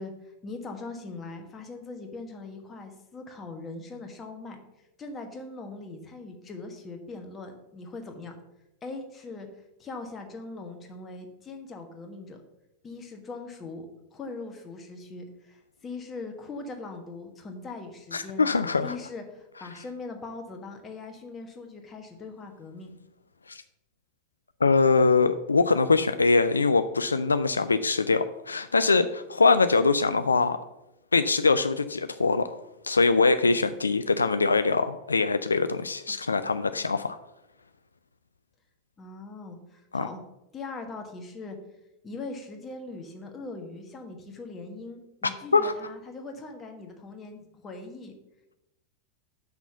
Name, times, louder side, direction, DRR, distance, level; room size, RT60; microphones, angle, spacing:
voice 1, 0.0-4.6 5.0-8.3 8.8-9.5 9.8-12.4 12.8-13.9 14.1-18.5 18.8-23.0 39.0-40.2 40.5-41.6 42.0-48.1, left 3 dB, 20° left, 4 dB, 1.4 m, -41 dB
voice 2, 18.1-19.0 23.5-23.6 24.6-30.6 31.1-37.2 39.9-40.1 45.5-45.7, left 4 dB, 75° left, 11 dB, 0.3 m, -23 dB
5.9 x 5.8 x 6.8 m, 0.91 s
figure-of-eight pair, 90°, 0 cm